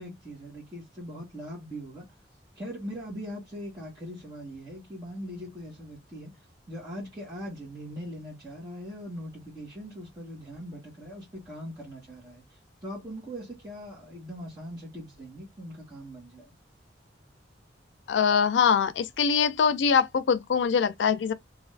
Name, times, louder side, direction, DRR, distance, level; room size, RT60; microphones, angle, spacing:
voice 1, 0.0-2.1 2.5-6.3 6.7-12.4 12.8-16.5, equal, 25° right, 1.1 m, -41 dB
voice 2, 18.1-21.3, left 6 dB, 90° left, 0.4 m, -23 dB
2.5 x 2.5 x 3.1 m
head